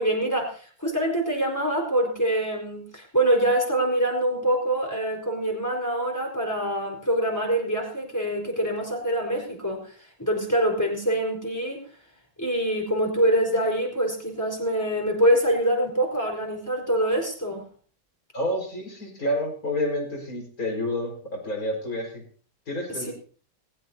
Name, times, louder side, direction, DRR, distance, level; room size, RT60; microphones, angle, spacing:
voice 1, 0.0-9.9 10.2-11.9 12.4-17.6 23.0-23.1, right 1 dB, 10° left, 0 dB, 4.6 m, -25 dB
voice 2, 18.3-22.2 22.7-23.1, left 1 dB, 55° left, 0 dB, 5.6 m, -29 dB
20.5 x 15.5 x 2.8 m, 0.42 s
omnidirectional pair, 1.9 m